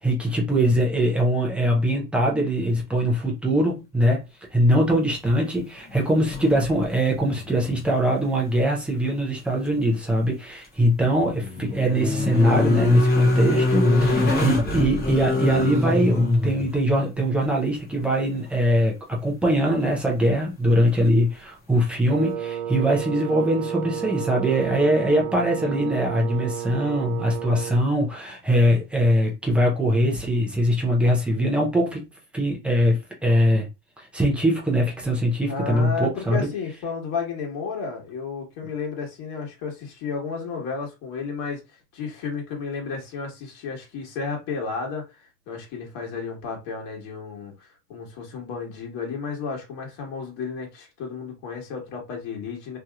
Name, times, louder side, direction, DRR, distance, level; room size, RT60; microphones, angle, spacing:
voice 1, 0.0-4.2 4.5-19.0 19.2-32.0 32.3-33.7 34.0-36.5, equal, 5° right, 0.4 m, -22 dB
sound 1, 5.9-6.9 7.2-8.0 8.2-8.3 10.8-16.7 19.6-19.7, left 2 dB, 20° left, 0.8 m, -23 dB
Wind instrument woodwind instrument, 22.1-27.9, right 9 dB, 55° right, 0.5 m, -32 dB
voice 2, 35.5-41.6 41.9-52.8, left 5 dB, 40° left, 1.5 m, -32 dB
2.9 x 2.8 x 2.3 m
supercardioid pair, 130°, 49 cm